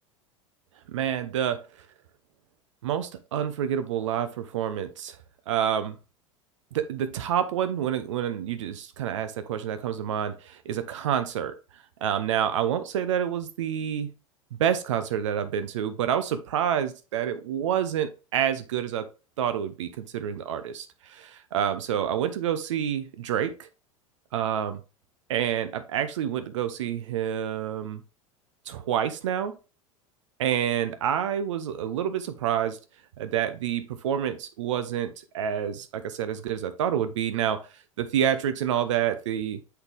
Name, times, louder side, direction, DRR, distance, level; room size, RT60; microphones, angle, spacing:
voice 1, 0.9-1.6 2.8-5.2 5.5-6.0 6.7-11.5 12.0-14.1 14.5-19.1 19.4-23.7 24.3-24.8 25.3-28.0 28.7-29.5 30.4-32.8 33.2-37.6 38.0-39.6, right 9 dB, 65° right, 10 dB, 0.8 m, -28 dB
8.0 x 4.0 x 3.3 m, 0.31 s
figure-of-eight pair, 80°, 17 cm